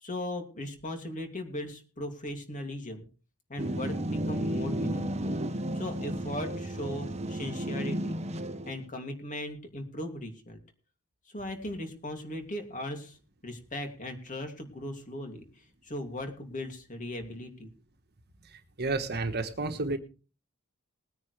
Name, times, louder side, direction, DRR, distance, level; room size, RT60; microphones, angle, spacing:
voice 1, 0.0-3.1 3.5-5.4 5.7-8.2 8.7-10.6 11.3-13.2 13.4-17.7, left 1 dB, 35° left, 5 dB, 2.7 m, -38 dB
sound 1, 3.6-8.8, right 1 dB, 30° right, 1.0 m, -33 dB
voice 2, 18.5-20.0, right 3 dB, 50° right, 8 dB, 1.4 m, -31 dB
20.5 x 9.6 x 3.4 m, 0.35 s
head